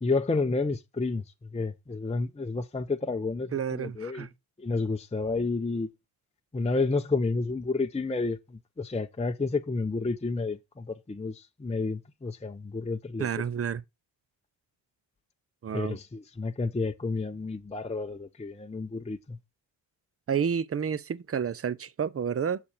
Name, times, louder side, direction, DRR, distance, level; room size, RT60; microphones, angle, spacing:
voice 1, 0.0-4.3 4.6-5.9 6.5-13.3 15.7-19.4, left 3 dB, 15° left, 0.8 m, -30 dB
voice 2, 3.5-4.3 13.2-13.8 15.6-16.0 20.3-22.6, right 7 dB, 30° right, 0.7 m, -30 dB
7.0 x 6.7 x 5.0 m
hypercardioid pair, 45°, 49 cm